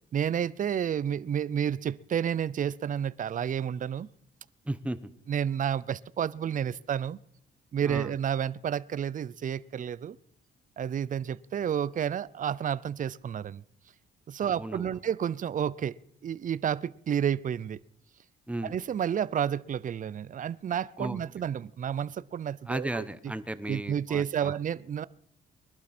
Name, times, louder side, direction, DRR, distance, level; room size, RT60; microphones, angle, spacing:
voice 1, 0.1-4.1 5.3-7.2 7.7-10.2 10.8-13.6 14.3-15.9 16.2-17.8 18.6-23.1 23.7-25.0, right 9 dB, 40° right, 0.5 m, -30 dB
voice 2, 4.6-5.1 7.8-8.1 14.4-14.9 18.5-18.7 21.0-21.2 22.7-24.6, right 1 dB, 5° right, 1.0 m, -35 dB
21.5 x 11.5 x 4.4 m
cardioid pair, 90°, 20 cm